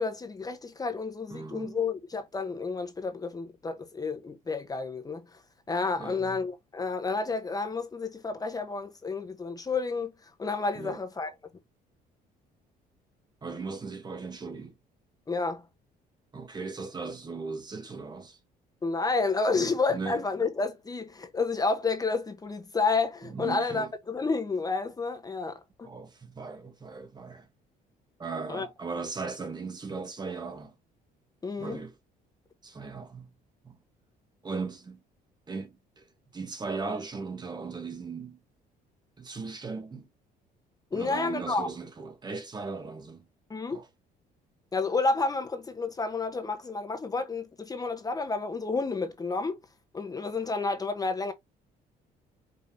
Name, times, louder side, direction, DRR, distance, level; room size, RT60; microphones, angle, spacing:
voice 1, 0.0-5.2 5.7-10.1 10.4-11.3 15.3-15.6 18.8-25.9 28.5-28.7 31.4-31.8 40.9-41.7 43.5-43.8 44.7-49.6 49.9-51.3, left 4 dB, 20° left, 0.9 m, -30 dB
voice 2, 1.3-1.8 6.0-6.4 10.7-11.0 13.4-14.7 16.3-18.4 19.5-20.2 23.3-23.9 25.8-27.5 28.2-30.7 31.6-31.9 32.6-33.3 33.6-33.8 34.4-35.0 35.5-36.0 36.3-38.4 39.2-40.1 40.9-43.2 43.7-43.9, right 4 dB, 25° right, 1.0 m, -38 dB
5.3 x 3.4 x 2.7 m
cardioid pair, 110°, 17 cm